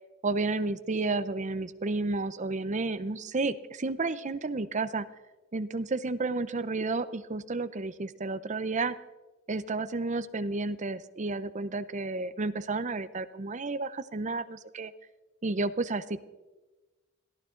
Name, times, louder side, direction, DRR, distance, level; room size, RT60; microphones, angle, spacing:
voice 1, 0.2-5.1 5.5-9.0 9.5-14.9 15.4-16.2, right 3 dB, 35° right, 13 dB, 0.7 m, -31 dB
21.5 x 15.0 x 3.8 m, 1.2 s
head